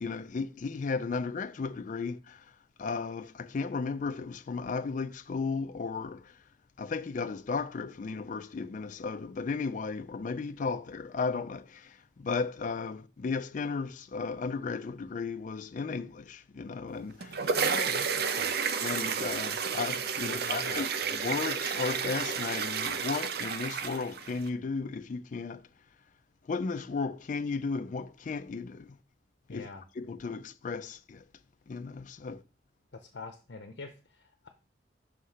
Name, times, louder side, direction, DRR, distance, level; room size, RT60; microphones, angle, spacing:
voice 1, 0.0-6.4 6.8-17.6 18.8-25.7 26.5-29.0 29.5-29.7 30.0-31.2 31.7-32.4, left 4 dB, 45° left, 0.4 m, -35 dB
sound 1, 17.0-24.5, right 6 dB, 60° right, 0.6 m, -31 dB
voice 2, 17.6-18.5 20.2-20.8 29.5-29.8 32.9-34.5, left 3 dB, 70° left, 0.7 m, -43 dB
6.4 x 3.2 x 5.6 m
head